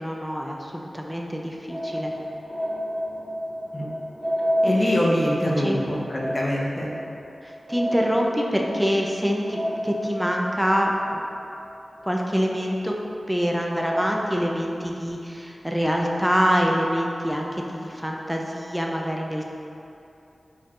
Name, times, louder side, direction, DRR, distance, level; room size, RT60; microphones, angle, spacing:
voice 1, 0.0-2.1 4.6-4.8 5.6-5.8 7.4-11.2 12.0-12.9 13.3-19.5, equal, 5° right, 0 dB, 0.4 m, -25 dB
sound 1, 1.7-12.5 13.0-13.1 13.7-14.2, equal, 10° left, 1.4 m, -30 dB
voice 2, 4.7-6.9, left 1 dB, 35° left, -4 dB, 0.8 m, -24 dB
4.5 x 4.4 x 2.4 m, 2.7 s
cardioid pair, 55°, 0 cm